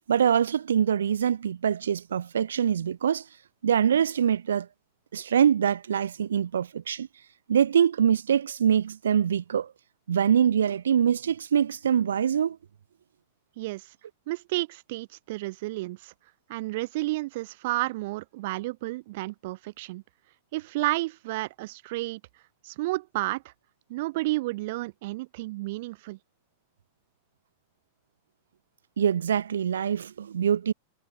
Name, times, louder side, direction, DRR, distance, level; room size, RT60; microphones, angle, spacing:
voice 1, 0.1-3.2 3.6-4.7 5.1-7.1 7.5-9.7 10.1-12.6 29.0-30.7, right 8 dB, 65° right, 0.5 m, -24 dB
voice 2, 13.6-13.9 14.3-16.1 16.5-20.0 20.5-22.2 22.6-23.5 23.9-26.2, right 20 dB, 50° right, 1.2 m, -31 dB
figure-of-eight pair, 90°, 0 cm